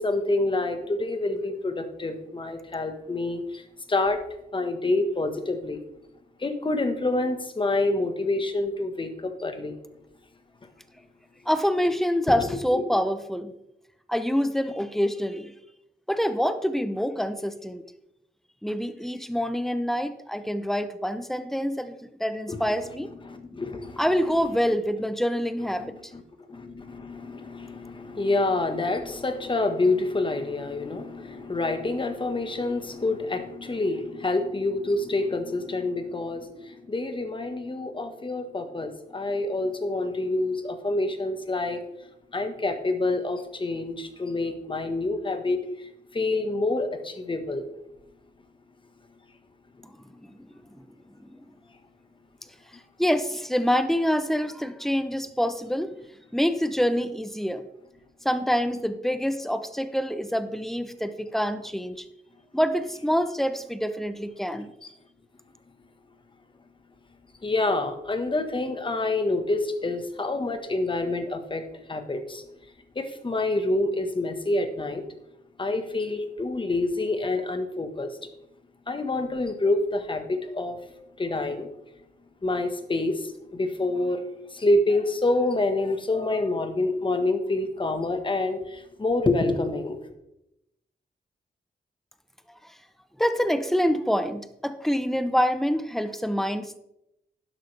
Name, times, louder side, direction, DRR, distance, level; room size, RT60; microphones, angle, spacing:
voice 1, 0.0-3.6 3.9-4.2 4.5-5.8 6.4-9.8 12.4-12.5 12.7-12.8 22.5-24.0 25.7-26.2 26.5-41.8 42.3-45.6 46.1-47.7 64.8-64.9 67.4-71.6 71.9-72.4 72.9-75.0 75.6-78.1 78.9-80.8 81.2-81.7 82.4-84.2 84.5-90.0, left 2 dB, 30° left, 7 dB, 1.4 m, -27 dB
voice 2, 11.5-13.5 14.1-15.5 16.1-17.8 18.6-23.1 24.0-26.0 50.2-50.4 50.7-50.8 53.0-55.9 56.3-57.7 58.2-62.0 62.5-64.7 93.2-96.8, equal, ahead, 10 dB, 0.8 m, -26 dB
12.0 x 10.5 x 3.4 m, 0.86 s
wide cardioid pair, 115°, 17 cm